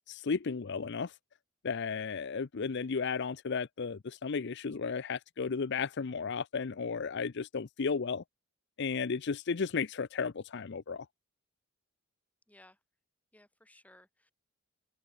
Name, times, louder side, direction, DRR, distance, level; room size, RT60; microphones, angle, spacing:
voice 1, 0.1-1.2 1.6-8.2 8.8-11.1, left 5 dB, 55° left, 0.5 m, -34 dB
voice 2, 12.5-12.8 13.3-14.3, left 1 dB, 5° left, 3.3 m, -60 dB
open air
head